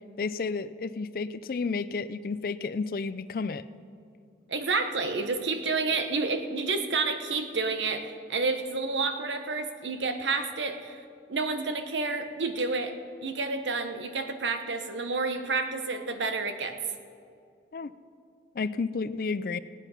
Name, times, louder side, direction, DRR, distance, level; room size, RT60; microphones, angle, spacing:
voice 1, 0.2-3.6 17.7-17.9 18.5-19.6, left 4 dB, 50° left, 15 dB, 0.4 m, -31 dB
voice 2, 4.5-11.0 11.3-12.9 13.2-16.8, right 3 dB, 85° right, 7 dB, 1.0 m, -29 dB
17.0 x 9.0 x 5.7 m, 2.4 s
head